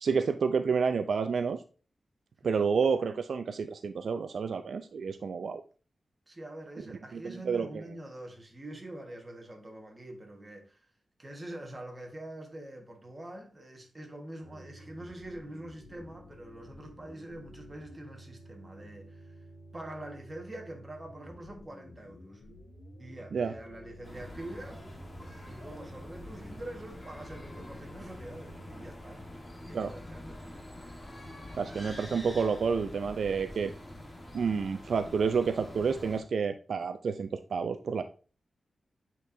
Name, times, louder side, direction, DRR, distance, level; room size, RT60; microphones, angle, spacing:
voice 1, 0.0-1.6 2.4-5.6 7.1-7.8 23.3-23.5 29.7-29.9 31.6-33.7 34.3-38.0, right 5 dB, 75° right, 0.4 m, -29 dB
voice 2, 6.3-10.8 11.2-19.3 19.7-22.4 23.0-24.8 25.4-29.2 29.6-31.0, right 1 dB, 20° right, 1.4 m, -45 dB
sound 1, 14.4-28.9, equal, 85° left, 1.7 m, -51 dB
sound 2, 24.0-36.2, left 1 dB, 15° left, 1.5 m, -46 dB
8.2 x 4.4 x 2.6 m
wide cardioid pair, 135°, 0 cm